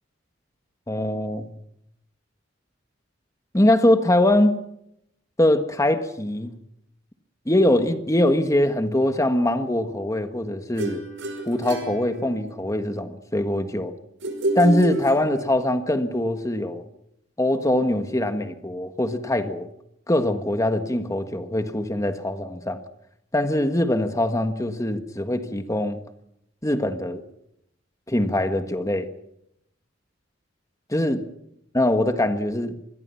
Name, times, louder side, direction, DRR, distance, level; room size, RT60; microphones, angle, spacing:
voice 1, 0.9-1.5 3.5-4.6 5.4-6.5 7.5-11.0 11.5-13.9 14.5-16.8 17.4-19.7 20.1-22.8 23.3-26.0 26.6-27.2 28.1-29.1 30.9-31.2 31.7-32.7, left 1 dB, 15° left, 8 dB, 1.5 m, -22 dB
sound 1, 10.8-12.7 14.2-15.7, right 2 dB, 70° right, 5.3 m, -29 dB
26.5 x 21.0 x 5.8 m, 0.79 s
head